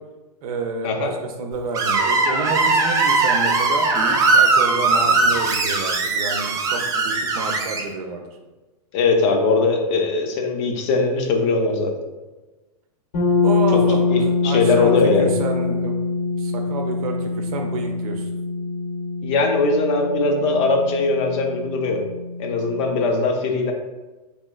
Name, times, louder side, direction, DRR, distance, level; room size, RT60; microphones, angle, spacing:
voice 1, 0.4-3.9 4.3-8.2 13.4-14.9 15.2-16.1 16.4-18.3, right 3 dB, 65° right, 3 dB, 0.6 m, -29 dB
Screech, 1.7-7.8, right 3 dB, 15° right, 0.3 m, -19 dB
voice 2, 8.9-11.9 13.7-13.8 14.1-15.3 19.2-22.0 22.4-23.7, left 3 dB, 50° left, 3 dB, 0.6 m, -20 dB
sound 1, 13.1-22.9, left 4 dB, 85° left, 1.3 m, -24 dB
3.1 x 3.1 x 2.3 m, 1.2 s
hypercardioid pair, 125°, 20 cm